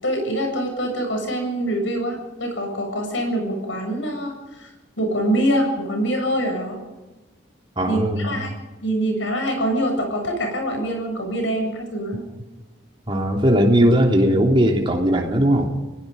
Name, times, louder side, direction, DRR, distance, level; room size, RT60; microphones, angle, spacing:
voice 1, 0.0-4.7 5.0-6.8 7.9-8.5 8.8-12.2, right 1 dB, 80° left, 3 dB, 7.5 m, -24 dB
voice 2, 7.8-8.3 13.1-15.7, equal, 25° right, 1 dB, 3.1 m, -18 dB
29.5 x 18.0 x 5.3 m, 1.1 s
head